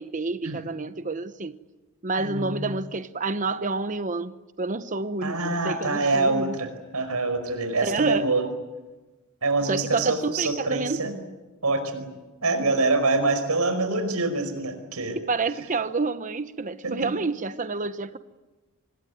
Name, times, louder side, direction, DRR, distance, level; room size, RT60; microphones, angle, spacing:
voice 1, 0.0-1.6 2.0-6.6 7.8-8.3 9.7-11.1 15.1-18.2, right 3 dB, 35° right, 1.0 m, -29 dB
voice 2, 2.2-2.7 5.2-8.4 9.4-11.1 11.6-12.1 12.4-15.2 16.8-17.1, right 3 dB, 90° right, 5.1 m, -25 dB
26.0 x 21.0 x 9.4 m
head